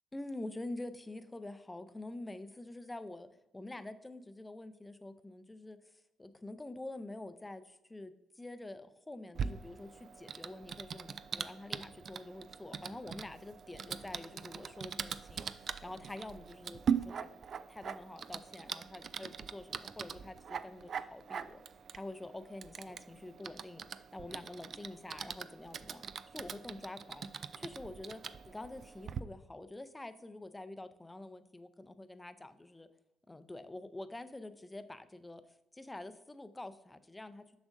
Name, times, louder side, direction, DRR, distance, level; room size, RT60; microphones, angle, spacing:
voice 1, 0.1-3.3 3.5-5.8 6.2-17.3 17.7-21.6 21.9-23.8 24.1-26.0 26.3-27.3 27.6-32.9 33.3-35.4 35.7-37.4, left 2 dB, 15° left, 11 dB, 0.5 m, -47 dB
Typing, 9.3-29.2, right 7 dB, 55° right, 0.3 m, -42 dB
7.1 x 6.1 x 2.6 m, 0.94 s
cardioid pair, 90°, 0 cm